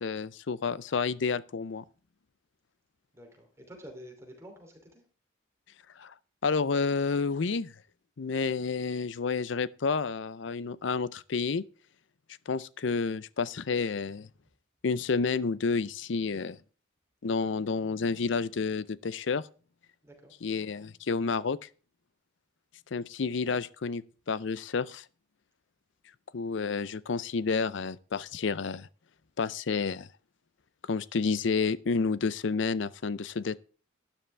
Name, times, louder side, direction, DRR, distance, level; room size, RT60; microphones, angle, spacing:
voice 1, 0.0-1.8 6.0-6.1 6.4-7.7 8.2-11.6 12.5-14.3 14.8-16.6 17.2-19.5 20.4-21.6 22.9-25.0 26.3-28.9 29.4-30.1 30.9-33.6, left 4 dB, 65° left, 0.5 m, -30 dB
voice 2, 3.1-5.0 20.0-20.3, equal, 15° right, 3.0 m, -49 dB
12.0 x 10.0 x 3.4 m
head